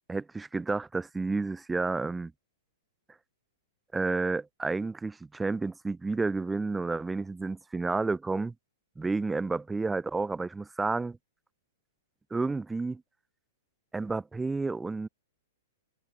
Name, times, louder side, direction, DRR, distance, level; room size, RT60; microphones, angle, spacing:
voice 1, 0.1-2.3 3.9-8.5 9.0-11.2 12.3-13.0 13.9-15.1, right 3 dB, 10° right, 0.6 m, -31 dB
figure-of-eight pair, 105°, 0 cm